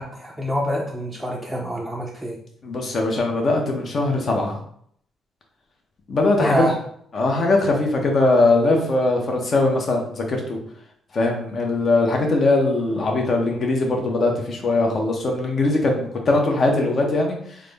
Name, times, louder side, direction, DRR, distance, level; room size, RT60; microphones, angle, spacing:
voice 1, 0.0-2.4 6.4-6.7, equal, ahead, -4 dB, 0.6 m, -26 dB
voice 2, 2.6-4.6 6.1-6.8 7.1-10.6 11.1-17.6, left 2 dB, 45° left, 1 dB, 0.9 m, -21 dB
3.6 x 2.1 x 3.4 m, 0.64 s
cardioid pair, 90°, 0 cm